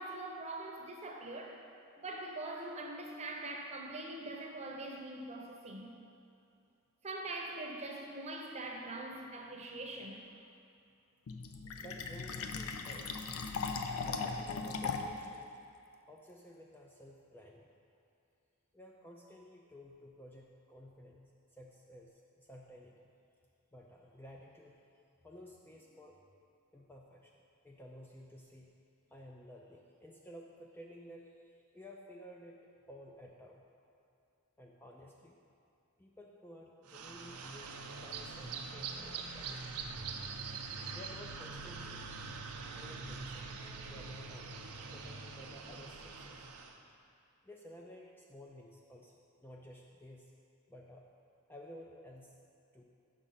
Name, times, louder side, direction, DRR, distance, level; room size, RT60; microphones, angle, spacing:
voice 1, 0.0-1.6 2.0-5.9 7.0-10.3, right 2 dB, 30° right, 1 dB, 0.7 m, -43 dB
Fill (with liquid), 11.3-15.3, left 4 dB, 70° left, 0.5 m, -38 dB
voice 2, 11.7-13.5 14.0-15.4 16.1-17.7 18.7-23.1 23.7-24.8 25.2-26.4 26.7-27.4 27.6-28.7 29.1-33.6 34.6-35.4 36.0-39.8 40.9-42.0 42.8-43.5 43.8-44.6 44.9-46.5 47.4-50.3 50.7-51.1 51.5-52.4 52.7-52.8, equal, 10° left, -1 dB, 0.3 m, -53 dB
sound 1, 36.9-46.8, right 4 dB, 90° right, 0.6 m, -44 dB
6.1 x 5.2 x 5.6 m, 2.5 s
head